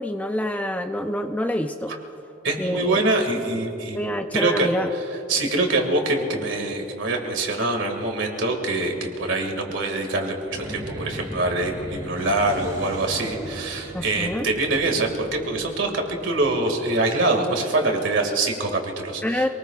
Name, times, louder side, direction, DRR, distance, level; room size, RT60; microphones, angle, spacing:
voice 1, 0.0-2.0 2.6-3.0 3.9-4.9 13.9-14.5 19.2-19.5, equal, 10° left, 6 dB, 0.4 m, -26 dB
voice 2, 2.4-4.0 4.3-5.0 5.3-19.5, right 2 dB, 70° right, 3 dB, 2.2 m, -24 dB
sound 1, 10.5-17.1, right 1 dB, 20° right, 1.7 m, -38 dB
26.0 x 19.5 x 2.4 m, 3.0 s
head